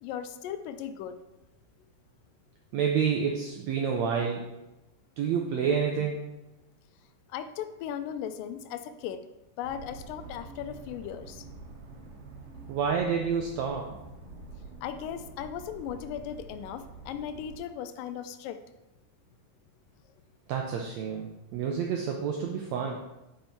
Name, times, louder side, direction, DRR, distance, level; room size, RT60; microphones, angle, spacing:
voice 1, 0.0-1.2 7.3-9.2 9.6-11.5 14.8-18.6, left 9 dB, 85° left, 11 dB, 2.2 m, -37 dB
voice 2, 2.7-4.4 5.2-6.2 12.7-13.8 20.5-21.3 21.5-23.0, right 6 dB, 80° right, 1 dB, 1.5 m, -28 dB
sound 1, 9.6-17.6, right 3 dB, 55° right, 1.8 m, -47 dB
6.9 x 5.5 x 4.4 m, 0.98 s
omnidirectional pair, 3.9 m